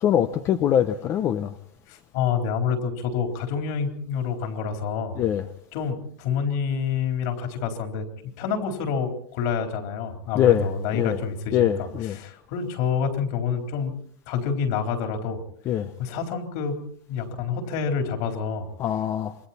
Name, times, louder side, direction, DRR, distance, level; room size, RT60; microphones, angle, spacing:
voice 1, 0.0-1.5 5.2-5.4 10.4-10.7 10.9-11.2 11.5-12.2 15.7-15.9 18.8-19.3, left 10 dB, 25° left, 10 dB, 0.7 m, -22 dB
voice 2, 1.9-5.2 5.7-8.1 8.4-13.9 14.3-15.4 16.0-16.8 17.1-18.7, left 6 dB, 45° left, 4 dB, 4.0 m, -28 dB
27.5 x 23.0 x 4.3 m, 0.64 s
supercardioid pair, 170°, 11 cm